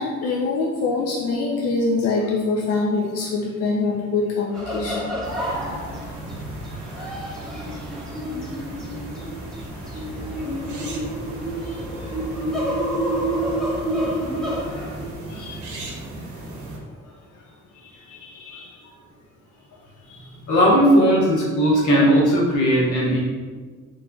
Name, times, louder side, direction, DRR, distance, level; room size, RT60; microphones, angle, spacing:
voice 1, 0.0-5.2 9.9-10.0 11.6-12.2 14.7-14.9 15.3-15.9 17.8-18.8 20.1-20.2 21.9-22.0, left 3 dB, 55° left, -2 dB, 0.5 m, -25 dB
sound 1, 4.5-15.1, right 1 dB, ahead, 0.9 m, -29 dB
sound 2, 5.2-16.8, right 2 dB, 75° right, 0.8 m, -36 dB
voice 2, 20.5-23.2, equal, 80° left, -5 dB, 1.2 m, -17 dB
3.7 x 3.2 x 2.3 m, 1.5 s
cardioid pair, 90°, 30 cm